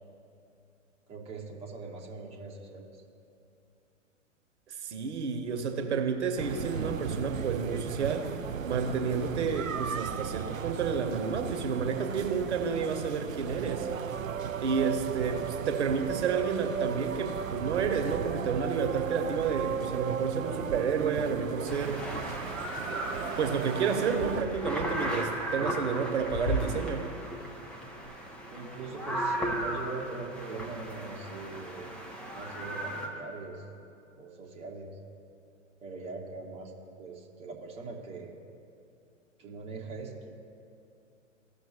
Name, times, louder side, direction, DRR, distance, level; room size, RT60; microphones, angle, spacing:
voice 1, 1.1-3.0 15.3-15.5 28.5-31.9 32.3-33.7 34.2-34.9 35.8-36.7 37.0-38.3 39.4-40.4, right 3 dB, 15° right, -1 dB, 0.9 m, -41 dB
voice 2, 4.8-8.3 8.6-13.9 14.6-22.0 23.4-27.0, right 6 dB, 60° right, 5 dB, 1.1 m, -30 dB
sound 1, 6.4-24.4, right 7 dB, 90° right, 0.5 m, -35 dB
sound 2, 21.7-33.1, right 1 dB, 5° left, 0.5 m, -35 dB
16.0 x 6.1 x 2.8 m, 2.6 s
figure-of-eight pair, 105°, 38 cm